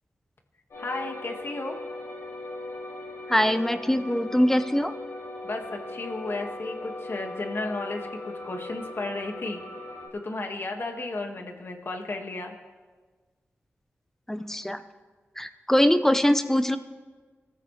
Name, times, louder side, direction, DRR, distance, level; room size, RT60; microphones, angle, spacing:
sound 1, 0.7-10.1, left 2 dB, 75° left, 5.5 m, -39 dB
voice 1, 0.8-1.8 5.4-9.6 10.1-12.5, left 2 dB, 55° left, 3 dB, 1.8 m, -34 dB
voice 2, 3.3-4.9 14.3-14.8 15.4-16.8, equal, 10° left, 10 dB, 0.8 m, -22 dB
27.5 x 14.0 x 3.3 m, 1.4 s
wide cardioid pair, 90°, 5 cm